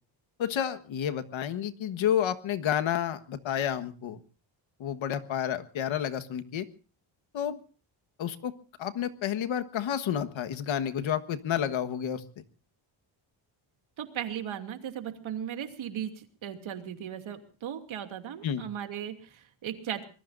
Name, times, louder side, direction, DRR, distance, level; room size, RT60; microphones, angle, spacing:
voice 1, 0.4-4.2 4.8-6.7 7.3-7.6 8.2-8.5 8.8-12.2 18.4-18.6, left 9 dB, 70° left, 10 dB, 1.5 m, -30 dB
voice 2, 14.0-20.0, right 9 dB, 75° right, 6 dB, 2.7 m, -37 dB
25.0 x 21.0 x 2.6 m, 0.38 s
cardioid pair, 150°, 48 cm